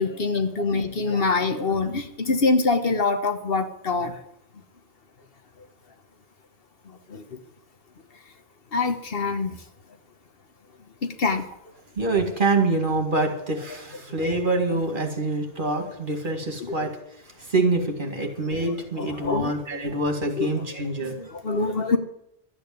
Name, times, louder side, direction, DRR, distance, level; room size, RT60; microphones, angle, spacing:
voice 1, 0.0-4.2 7.1-7.4 8.7-9.5 11.0-11.5 16.6-16.9 19.0-19.5 20.4-20.5 21.3-22.0, left 3 dB, 65° left, 8 dB, 1.4 m, -25 dB
voice 2, 12.0-16.9 17.4-21.3, right 2 dB, 55° right, 4 dB, 2.3 m, -26 dB
12.5 x 8.7 x 9.2 m, 0.78 s
omnidirectional pair, 1.0 m